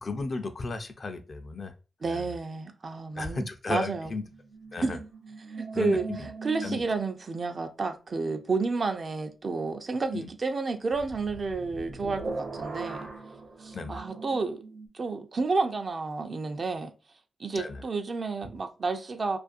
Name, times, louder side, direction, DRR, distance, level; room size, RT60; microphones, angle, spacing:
voice 1, 0.0-1.7 2.0-2.3 3.2-4.2 4.7-5.0 5.7-6.3 6.6-6.8 10.1-10.3 13.7-14.0 17.5-17.8, left 3 dB, 55° left, 0.4 m, -34 dB
voice 2, 2.0-4.1 4.8-5.0 5.5-6.1 6.4-13.1 13.6-14.6 14.9-16.9 17.4-19.4, right 4 dB, 55° right, 0.4 m, -30 dB
sound 1, 4.0-7.4 10.9-14.9, right 3 dB, 85° right, 0.9 m, -40 dB
2.5 x 2.3 x 2.5 m
supercardioid pair, 45°, 0 cm